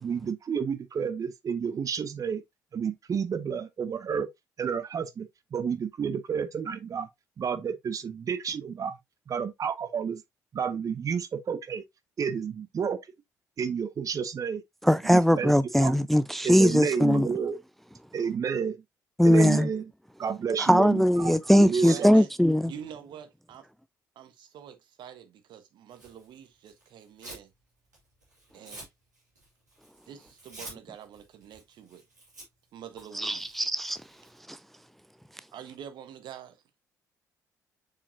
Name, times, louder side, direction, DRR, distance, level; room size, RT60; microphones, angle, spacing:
voice 1, 0.0-2.4 2.7-4.3 4.6-7.1 7.4-9.0 9.3-10.2 10.5-11.8 12.2-13.0 13.6-14.6 15.0-15.5 15.8-15.9 16.4-17.6 18.1-18.8 19.2-19.9 20.2-22.1, right 6 dB, 40° right, 0.7 m, -30 dB
voice 2, 14.8-17.3 19.2-19.7 20.6-22.7 33.1-34.0 34.5-34.6, equal, ahead, 0.4 m, -21 dB
voice 3, 21.7-22.3 22.6-23.7 24.1-27.5 28.5-28.9 30.1-32.0 32.7-33.6 35.5-36.6, right 9 dB, 55° right, 1.2 m, -45 dB
Tearing, 25.9-27.5 27.8-34.4, right 2 dB, 85° right, 2.2 m, -49 dB
7.0 x 5.0 x 2.7 m
figure-of-eight pair, 45°, 9 cm